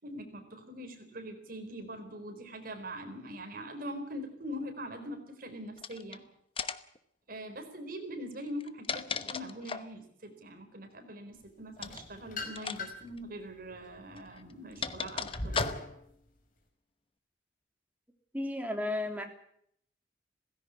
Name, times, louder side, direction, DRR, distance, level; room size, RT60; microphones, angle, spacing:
voice 1, 0.0-6.2 7.3-15.6, equal, 55° right, 6 dB, 4.5 m, -42 dB
sound 1, 5.8-6.2 6.6-7.0 8.5-10.0 11.8-12.1 12.6-12.8 13.1-13.2 14.2-16.1, left 5 dB, 30° left, 1.0 m, -37 dB
sound 2, 11.8-13.2 13.7-16.0, left 2 dB, 50° left, 4.6 m, -40 dB
voice 2, 18.3-19.2, left 1 dB, 10° right, 5 dB, 2.9 m, -33 dB
17.5 x 16.0 x 9.7 m, 0.70 s
head